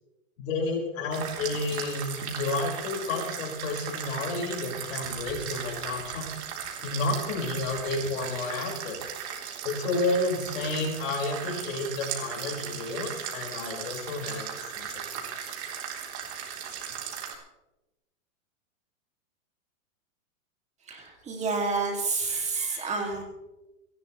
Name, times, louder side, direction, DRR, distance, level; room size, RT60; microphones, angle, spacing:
voice 1, 0.4-6.3 6.8-9.0 9.6-15.4, left 2 dB, 65° left, 0 dB, 5.7 m, -31 dB
sound 1, 1.1-17.3, right 8 dB, 50° right, 3.9 m, -37 dB
voice 2, 20.8-23.2, right 4 dB, 15° right, 1 dB, 2.7 m, -29 dB
29.0 x 11.5 x 3.3 m, 1.0 s
supercardioid pair, 150°, 41 cm